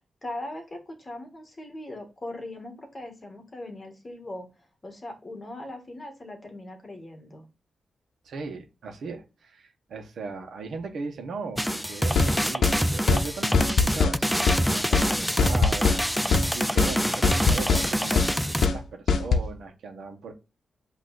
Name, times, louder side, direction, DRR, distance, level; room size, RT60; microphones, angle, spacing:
voice 1, 0.2-4.5 4.8-7.4, left 1 dB, 25° left, 4 dB, 1.5 m, -39 dB
voice 2, 8.2-16.0 16.5-20.3, right 4 dB, 70° right, 5 dB, 1.3 m, -38 dB
sound 1, 11.6-18.7, equal, ahead, 0.3 m, -26 dB
sound 2, 12.2-12.3 12.6-12.8 13.1-13.2 13.5-14.2 14.5-14.6 14.9-15.1 15.4-16.0 16.3-16.5 16.8-16.9 17.2-17.9 18.2-18.3 18.6-18.8 19.1-19.5, left 5 dB, 75° left, 0.7 m, -22 dB
7.9 x 3.0 x 4.0 m, 0.27 s
wide cardioid pair, 160°, 0 cm